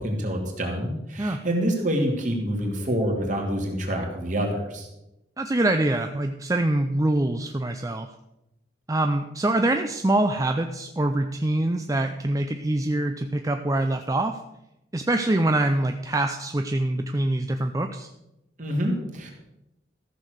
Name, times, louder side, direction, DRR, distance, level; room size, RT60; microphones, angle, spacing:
voice 1, 0.0-4.9 18.6-19.3, equal, 45° right, 1 dB, 2.6 m, -27 dB
voice 2, 5.4-8.1 8.9-14.4 14.9-18.1, right 1 dB, 20° right, 6 dB, 0.5 m, -24 dB
14.0 x 6.5 x 6.5 m, 0.90 s
head